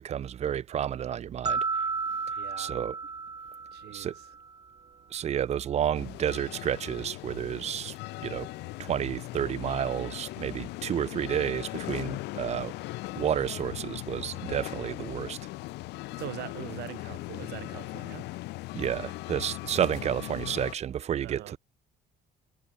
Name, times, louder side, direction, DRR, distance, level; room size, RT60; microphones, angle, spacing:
voice 1, 0.0-1.7 2.6-3.0 3.9-4.1 5.1-7.9 8.2-8.5 8.8-12.7 13.2-15.4 18.7-21.6, right 9 dB, 40° right, 0.5 m, -31 dB
sound 1, 1.4-4.6, right 4 dB, 25° right, 1.5 m, -33 dB
voice 2, 2.4-2.8 3.7-4.1 16.2-18.3 21.2-21.6, right 16 dB, 75° right, 1.5 m, -42 dB
sound 2, 5.9-20.7, left 20 dB, 85° left, 1.3 m, -39 dB
cardioid pair, 110°, 17 cm